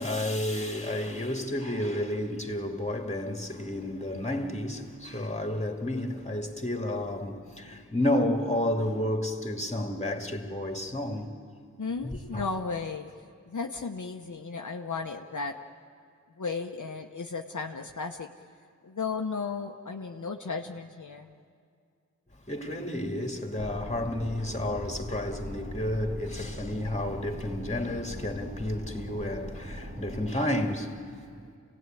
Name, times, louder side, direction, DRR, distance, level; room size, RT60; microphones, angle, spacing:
voice 1, 0.0-11.3 12.0-12.4 22.5-31.1, left 1 dB, 20° left, 2.3 m, -31 dB
voice 2, 11.8-13.1 13.5-15.6 16.4-18.3 18.8-21.3, left 4 dB, 65° left, 0.9 m, -34 dB
sound 1, 23.6-30.3, equal, 25° right, 2.2 m, -40 dB
27.5 x 17.5 x 9.1 m
wide cardioid pair, 50°, 32 cm